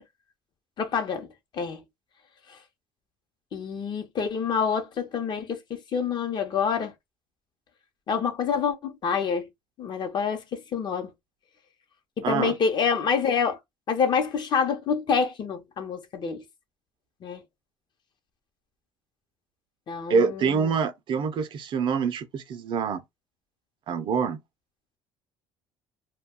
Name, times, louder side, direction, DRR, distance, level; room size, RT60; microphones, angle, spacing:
voice 1, 0.8-1.3 1.5-1.8 2.5-2.6 3.5-6.9 8.1-9.5 9.8-11.1 12.2-13.6 13.9-16.4 17.2-17.4 19.9-20.7, left 6 dB, 45° left, 0.8 m, -27 dB
voice 2, 12.2-12.5 20.1-23.0 23.9-24.4, right 5 dB, 50° right, 0.5 m, -25 dB
2.2 x 2.2 x 3.5 m
supercardioid pair, 95°, 10 cm